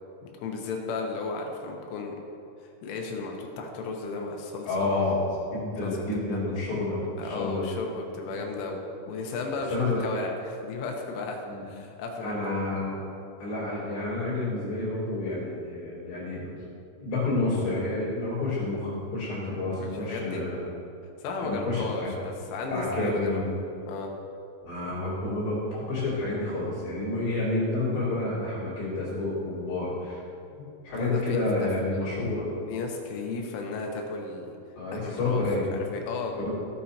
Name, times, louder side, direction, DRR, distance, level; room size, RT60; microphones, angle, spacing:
voice 1, 0.2-2.2 2.6-4.7 5.8-6.1 6.3-6.4 7.2-8.8 9.1-12.3 19.8-20.4 21.2-23.4 23.9-24.1 31.0-31.4 32.7-34.5 34.9-35.4 35.7-36.3, left 3 dB, 80° left, 1 dB, 3.5 m, -34 dB
voice 2, 4.7-5.2 5.5-7.7 8.3-8.4 9.7-10.0 11.4-11.6 12.2-13.0 13.4-16.5 17.0-20.6 21.4-22.1 22.7-23.5 24.6-25.6 25.9-30.2 30.6-32.5 34.7-35.7 36.3-36.5, left 2 dB, 65° left, -10 dB, 5.1 m, -29 dB
16.0 x 9.1 x 2.8 m, 2.6 s
omnidirectional pair, 5.6 m